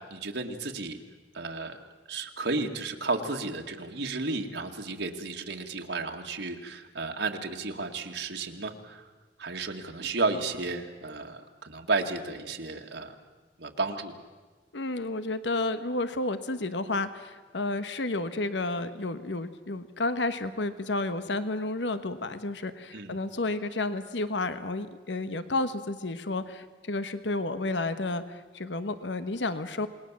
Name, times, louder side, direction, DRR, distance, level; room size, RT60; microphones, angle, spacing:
voice 1, 0.1-1.0 1.3-1.8 2.1-9.0 9.4-13.2 13.6-14.1 22.9-23.2, right 3 dB, 70° right, 3 dB, 2.1 m, -33 dB
voice 2, 14.7-29.9, left 2 dB, 75° left, 11 dB, 1.2 m, -31 dB
28.0 x 20.5 x 7.5 m, 1.3 s
head